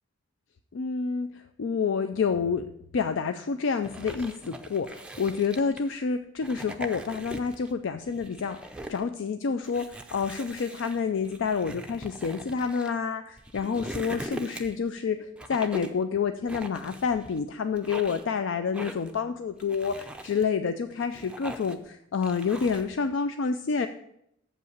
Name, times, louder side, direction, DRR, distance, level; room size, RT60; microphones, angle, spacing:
voice 1, 0.7-2.7 2.9-8.6 8.9-23.9, left 5 dB, 70° left, 9 dB, 0.4 m, -28 dB
sound 1, 3.8-5.9 6.4-7.7 8.1-9.0 9.6-12.9 13.4-14.9 15.4-16.0 16.5-17.4 17.7-18.3 18.7-19.2 19.6-20.4 20.9-21.9 22.2-22.9, right 1 dB, 5° right, 0.5 m, -41 dB
7.3 x 5.5 x 6.5 m, 0.76 s
head